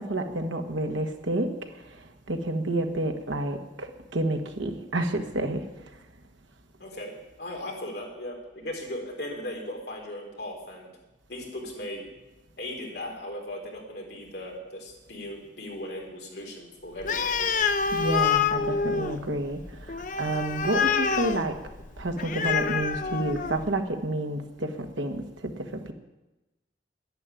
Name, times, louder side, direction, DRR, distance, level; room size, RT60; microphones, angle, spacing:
voice 1, 0.0-1.5 2.3-5.6 17.9-19.6 20.2-21.5 22.0-25.9, right 1 dB, 85° right, 5 dB, 1.6 m, -29 dB
voice 2, 6.8-7.1 7.4-10.9 11.3-12.1 12.6-17.6, left 1 dB, 60° left, 0 dB, 3.7 m, -37 dB
Animal, 17.0-23.8, left 6 dB, 45° left, 0.7 m, -27 dB
11.0 x 10.5 x 9.2 m, 1.0 s
head